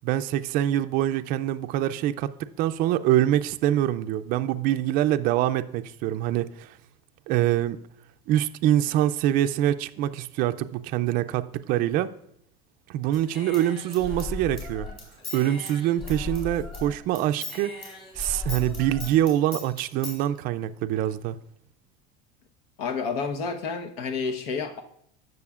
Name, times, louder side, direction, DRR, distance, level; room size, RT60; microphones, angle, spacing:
voice 1, 0.0-6.8 7.3-7.8 8.3-12.1 12.9-14.9 15.3-17.7 18.1-21.4, right 12 dB, 45° right, 0.4 m, -25 dB
Human voice / Scissors, 13.1-16.9 17.1-20.2, left 3 dB, 30° left, 3.6 m, -37 dB
voice 2, 22.8-24.8, left 5 dB, 80° left, 1.1 m, -30 dB
15.5 x 6.3 x 2.4 m
supercardioid pair, 140°, 20 cm